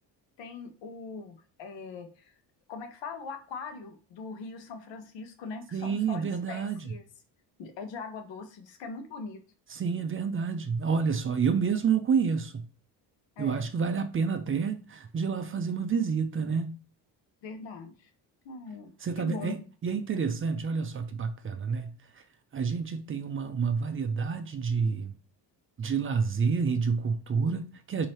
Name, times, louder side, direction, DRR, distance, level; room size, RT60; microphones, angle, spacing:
voice 1, 0.4-2.3 2.7-7.0 7.6-9.4 13.4-13.7 17.4-18.1 18.4-18.9 19.2-19.6, left 4 dB, 85° left, 0.9 m, -41 dB
voice 2, 5.7-6.9 9.7-12.7 13.4-16.8 19.0-22.2 22.5-25.1 25.8-28.1, right 5 dB, 30° right, 0.4 m, -29 dB
3.2 x 2.8 x 4.2 m
cardioid pair, 100°, 43 cm